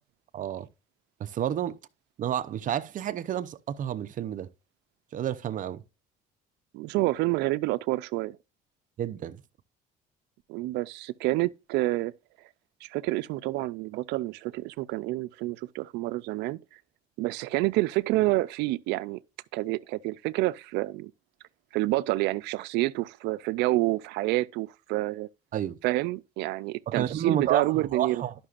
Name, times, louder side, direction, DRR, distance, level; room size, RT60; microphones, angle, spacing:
voice 1, 0.3-0.7 1.2-1.8 2.2-4.5 5.1-5.8 9.0-9.4 25.5-25.8 26.9-28.3, right 10 dB, 50° right, 0.7 m, -30 dB
voice 2, 6.7-8.4 10.5-12.1 12.8-16.6 17.2-19.2 19.5-21.1 21.7-25.3 25.8-28.2, right 19 dB, 90° right, 0.5 m, -28 dB
11.5 x 5.9 x 2.5 m
cardioid pair, 110°, 17 cm